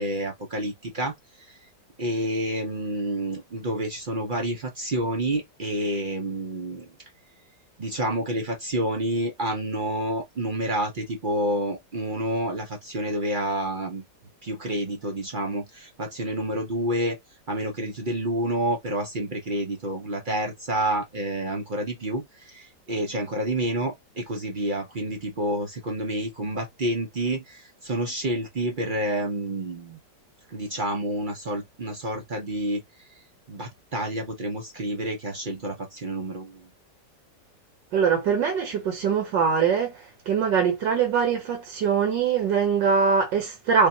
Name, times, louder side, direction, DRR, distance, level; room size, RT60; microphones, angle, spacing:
voice 1, 0.0-1.6 2.0-6.8 7.8-14.0 14.4-17.2 17.5-30.0 30.5-33.1 33.5-36.7, right 1 dB, 65° right, 0.5 m, -29 dB
voice 2, 37.9-43.9, right 6 dB, 85° right, 1.8 m, -23 dB
3.5 x 2.3 x 4.0 m
omnidirectional pair, 1.9 m